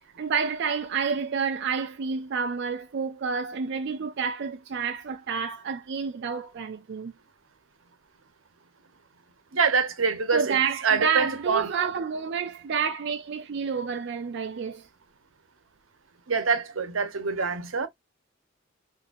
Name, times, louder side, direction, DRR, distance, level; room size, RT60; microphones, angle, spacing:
voice 1, 0.2-7.1 10.3-14.9, right 6 dB, 60° right, 0.4 m, -29 dB
voice 2, 9.5-10.6 10.8-11.8 16.3-17.9, right 5 dB, 85° right, 0.9 m, -25 dB
3.8 x 2.7 x 2.5 m
head